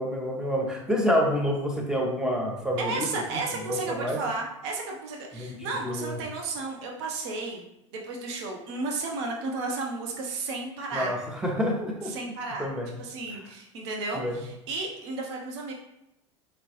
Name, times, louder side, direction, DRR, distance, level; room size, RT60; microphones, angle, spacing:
voice 1, 0.0-3.1 3.6-4.2 5.3-6.1 10.9-12.1 12.6-12.9 14.1-14.4, equal, 5° right, 0 dB, 0.9 m, -28 dB
voice 2, 2.8-7.6 7.9-11.2 12.0-12.7 13.0-15.7, right 3 dB, 60° right, 0 dB, 0.7 m, -33 dB
4.3 x 2.9 x 2.9 m, 0.86 s
figure-of-eight pair, 80°, 16 cm